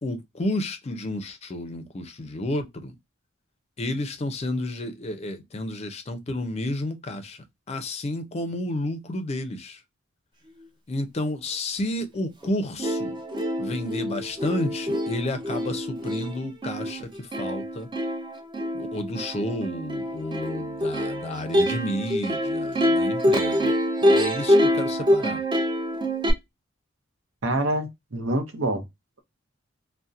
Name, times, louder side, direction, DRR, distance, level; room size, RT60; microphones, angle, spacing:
voice 1, 0.0-2.9 3.8-9.8 10.9-13.2 13.6-17.9 18.7-23.7 24.0-25.4, left 1 dB, 35° left, 0.5 m, -31 dB
Plucked string instrument, 12.4-12.5 12.8-26.3, equal, 25° right, 0.5 m, -25 dB
voice 2, 27.4-28.9, right 1 dB, 75° right, 0.7 m, -26 dB
2.7 x 2.1 x 2.3 m
head